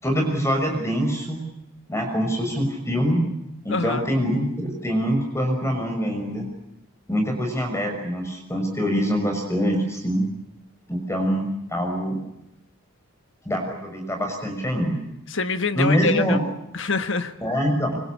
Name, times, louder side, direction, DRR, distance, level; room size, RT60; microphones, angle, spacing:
voice 1, 0.0-1.4 1.9-3.2 3.6-6.5 7.1-10.2 10.9-12.2 13.4-15.0 15.7-16.4 17.4-18.0, equal, 10° left, 4 dB, 6.2 m, -24 dB
voice 2, 3.7-4.1 15.3-16.4 16.7-17.3, left 4 dB, 55° left, 9 dB, 1.5 m, -25 dB
26.0 x 25.5 x 8.4 m, 0.84 s
head